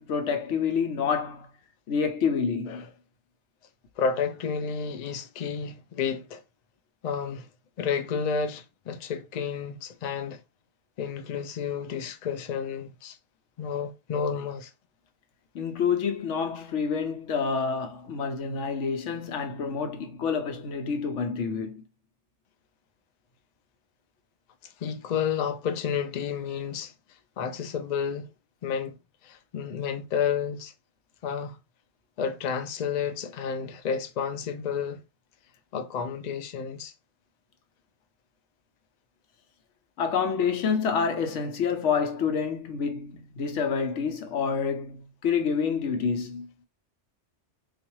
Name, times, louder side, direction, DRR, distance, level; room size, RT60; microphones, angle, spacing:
voice 1, 0.0-1.5 1.9-2.8 15.5-21.8 40.0-46.5, left 6 dB, 85° left, 1.0 m, -28 dB
voice 2, 4.0-6.4 7.0-7.5 7.8-10.4 11.0-13.2 13.6-14.7 24.6-26.9 27.4-28.3 28.6-29.0 29.2-30.7 31.2-31.6 32.2-35.0 35.7-36.9, left 6 dB, 50° left, 0.5 m, -31 dB
4.0 x 2.4 x 3.0 m
omnidirectional pair, 1.2 m